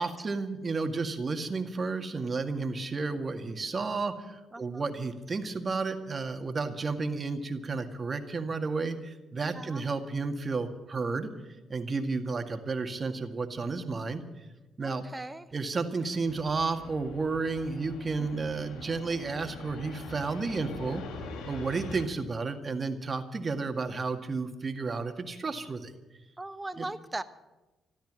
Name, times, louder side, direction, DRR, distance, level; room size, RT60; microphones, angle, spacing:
voice 1, 0.0-11.3 11.7-14.3 14.8-15.0 15.5-21.0 21.4-25.9 26.8-26.9, right 4 dB, 40° right, 6 dB, 1.9 m, -32 dB
voice 2, 4.5-4.8 9.5-9.8 14.8-15.5 18.2-18.5 26.4-27.2, right 2 dB, 20° right, 11 dB, 1.2 m, -39 dB
Fixed-wing aircraft airplane, 16.3-22.1, left 3 dB, 80° left, 1.8 m, -43 dB
14.0 x 12.5 x 7.6 m, 1.1 s
supercardioid pair, 55°, 0 cm